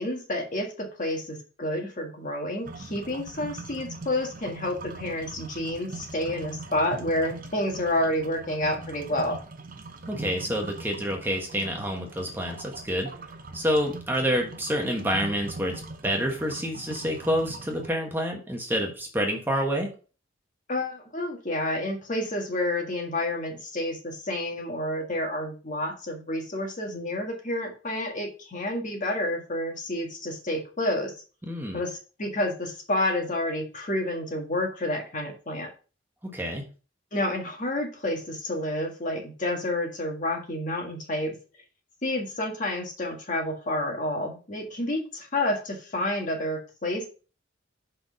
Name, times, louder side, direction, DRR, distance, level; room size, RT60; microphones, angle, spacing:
voice 1, 0.0-9.4 20.7-31.1 31.7-35.7 37.1-41.4 42.0-47.1, left 1 dB, 45° left, 2 dB, 1.7 m, -29 dB
sound 1, 2.6-17.9, right 3 dB, 45° right, 0.8 m, -41 dB
voice 2, 10.1-13.1 13.5-15.7 16.0-19.9 31.4-31.8 36.2-36.6, equal, 10° right, 1 dB, 1.2 m, -28 dB
5.7 x 4.3 x 5.2 m, 0.36 s
head